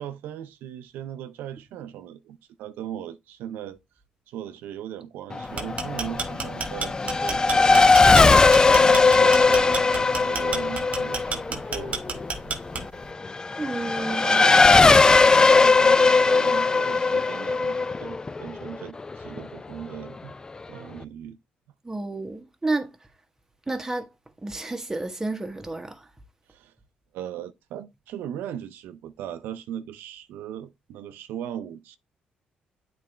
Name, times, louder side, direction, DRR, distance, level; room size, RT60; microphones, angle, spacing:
voice 1, 0.0-3.8 4.3-7.9 8.7-12.1 13.9-20.3 20.7-21.4 26.5-26.7 27.1-32.0, right 10 dB, 90° right, 0.5 m, -38 dB
Race car auto racing / Accelerating revving vroom, 5.3-19.4, left 4 dB, 25° left, 0.3 m, -19 dB
sound 1, 5.4-13.1, right 4 dB, 45° right, 1.3 m, -31 dB
voice 2, 13.6-14.5 21.8-22.9 23.7-24.1 24.4-26.1, right 2 dB, 15° right, 1.2 m, -30 dB
8.4 x 4.0 x 3.3 m
cardioid pair, 85°, 3 cm